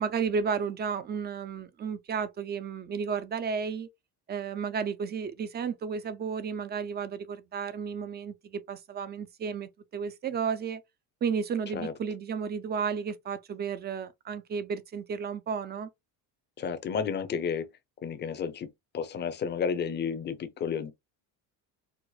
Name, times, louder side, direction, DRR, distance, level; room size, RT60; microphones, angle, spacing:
voice 1, 0.0-3.9 4.3-10.8 11.2-15.9, right 6 dB, 25° right, 0.4 m, -33 dB
voice 2, 16.6-17.7 18.0-18.7 18.9-20.9, left 6 dB, 25° left, 0.6 m, -31 dB
4.8 x 2.0 x 2.3 m
cardioid pair, 135°, 40 cm